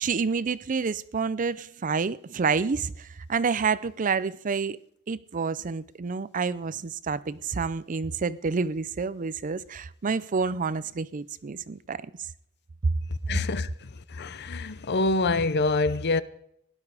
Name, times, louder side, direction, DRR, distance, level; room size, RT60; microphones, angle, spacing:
voice 1, 0.0-4.8 5.1-12.3 12.8-12.9, right 5 dB, 40° right, 0.5 m, -28 dB
voice 2, 13.3-13.7 14.2-16.2, left 3 dB, 55° left, 0.7 m, -25 dB
17.0 x 11.5 x 4.9 m
head